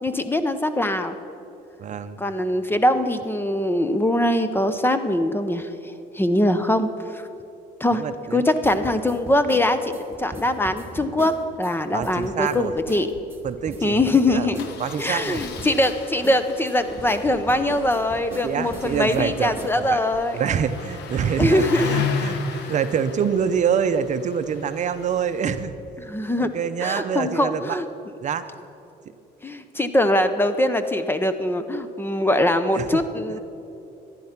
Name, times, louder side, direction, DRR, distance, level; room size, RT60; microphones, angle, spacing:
voice 1, 0.0-1.2 2.2-5.7 6.1-7.3 7.8-8.0 8.3-13.1 13.8-14.7 15.0-20.4 21.4-21.9 26.0-26.5 26.8-27.9 29.4-33.4, left 1 dB, 15° left, 10 dB, 0.7 m, -22 dB
voice 2, 1.8-2.2 8.0-8.5 11.9-12.7 13.4-14.5 14.8-15.4 18.4-20.0 20.3-25.7 26.4-27.8 28.2-28.4 32.7-33.0 33.3-33.4, right 7 dB, 45° right, 10 dB, 0.7 m, -26 dB
sound 1, 8.6-11.7 12.0-12.6 12.9-13.0 13.3-15.1 15.4-15.9 16.2-19.2 19.6-19.8, right 2 dB, 15° right, 2.0 m, -38 dB
Engine starting, 12.6-12.9 13.2-13.3 13.5-13.7 14.6-25.6, left 6 dB, 80° left, 1.2 m, -34 dB
14.0 x 11.0 x 5.9 m, 2.8 s
cardioid pair, 110°, 17 cm